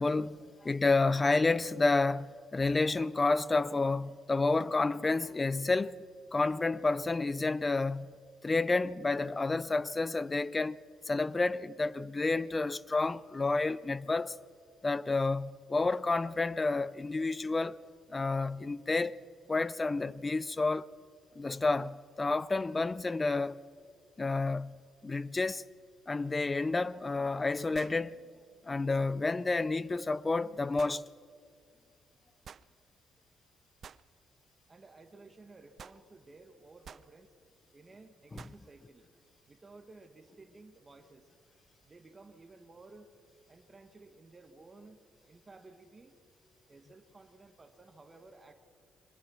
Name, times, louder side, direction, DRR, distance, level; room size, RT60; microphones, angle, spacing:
voice 1, 0.0-6.0 6.3-8.2 8.4-10.8 11.1-14.3 14.8-17.8 18.1-19.2 19.5-20.9 21.4-23.6 24.2-25.6 26.1-28.2 28.7-31.0, left 3 dB, 25° left, 0.5 m, -30 dB
sound 1, 26.5-26.6 27.7-28.1 30.8-31.0 32.4-32.7 33.8-34.1 35.8-36.0 36.8-37.1 38.3-38.6, right 7 dB, 55° right, 0.5 m, -50 dB
voice 2, 34.7-37.3 37.7-39.0 39.5-41.3 41.8-43.1 43.5-45.0 45.3-46.2 46.7-48.5, right 3 dB, 30° right, 1.5 m, -55 dB
23.5 x 20.0 x 6.2 m
cardioid pair, 90°, 0 cm